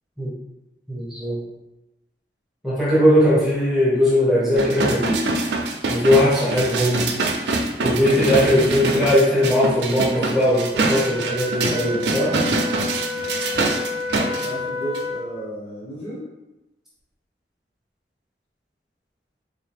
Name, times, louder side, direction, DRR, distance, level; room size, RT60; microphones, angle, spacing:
voice 1, 0.9-1.4 2.6-5.3 5.9-7.1 7.8-12.4, left 1 dB, ahead, -7 dB, 0.8 m, -19 dB
sound 1, 4.6-14.5 14.9-15.0, right 2 dB, 70° right, 0.5 m, -25 dB
Wind instrument woodwind instrument, 10.8-15.4, left 3 dB, 50° left, 1.0 m, -30 dB
voice 2, 14.1-16.3, right 1 dB, 30° left, -12 dB, 1.2 m, -34 dB
4.1 x 2.7 x 3.3 m, 0.98 s
head